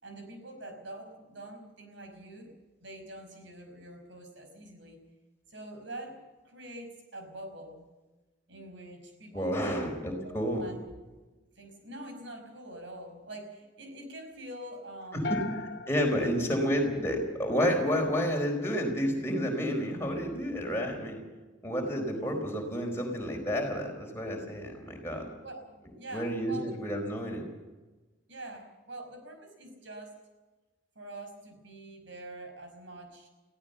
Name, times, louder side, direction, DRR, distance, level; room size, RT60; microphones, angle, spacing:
voice 1, 0.0-2.5 2.8-5.0 5.5-7.8 8.5-9.9 10.2-10.8 11.6-15.4 16.2-16.6 25.4-26.7 28.3-30.2 31.0-33.3, right 1 dB, 70° right, 5 dB, 5.5 m, -45 dB
voice 2, 9.3-10.7 15.1-15.4 15.9-21.2 21.6-25.3 26.1-27.5, equal, 15° left, 1 dB, 4.6 m, -30 dB
sound 1, 15.2-17.5, left 4 dB, 60° left, 1.1 m, -39 dB
22.5 x 16.5 x 7.0 m, 1.2 s
head